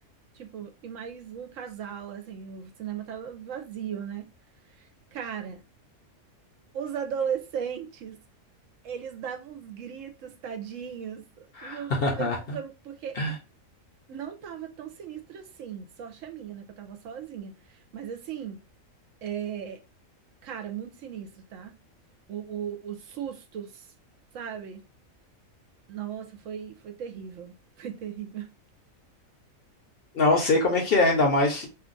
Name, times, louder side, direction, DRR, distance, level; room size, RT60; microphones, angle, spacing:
voice 1, 0.3-4.3 4.8-5.6 6.7-8.2 8.8-13.2 14.1-18.6 19.2-19.8 20.4-21.7 22.3-23.9 24.3-24.8 25.9-28.5 30.3-30.5, right 8 dB, 70° right, 0.9 m, -37 dB
voice 2, 11.6-12.6 13.2-13.3 30.1-31.7, left 2 dB, 50° left, 0.8 m, -23 dB
2.7 x 2.3 x 3.7 m
omnidirectional pair, 1.4 m